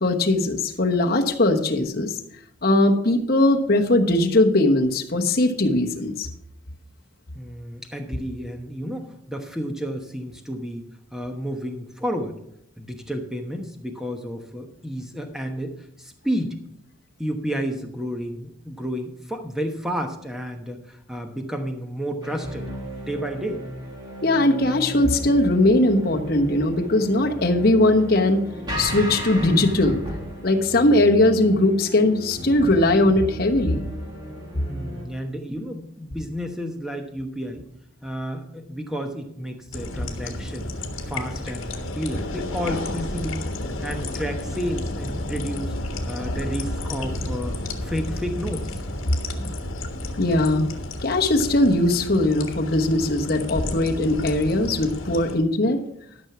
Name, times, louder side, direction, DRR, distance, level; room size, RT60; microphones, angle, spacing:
voice 1, 0.0-2.2 2.6-6.3 24.2-28.4 28.8-30.0 30.4-33.8 49.4-49.5 50.2-50.7 51.0-55.8, left 1 dB, 45° left, 2 dB, 1.1 m, -20 dB
voice 2, 7.3-10.8 11.1-12.4 12.8-16.6 17.2-22.7 23.1-23.6 34.5-37.6 38.0-43.5 43.8-45.7 46.1-48.8, equal, ahead, 4 dB, 1.1 m, -31 dB
sound 1, 22.2-35.0, equal, 20° right, 2.4 m, -35 dB
sound 2, 39.7-55.4, left 1 dB, 70° left, 1.5 m, -31 dB
12.5 x 6.1 x 5.9 m, 0.75 s
head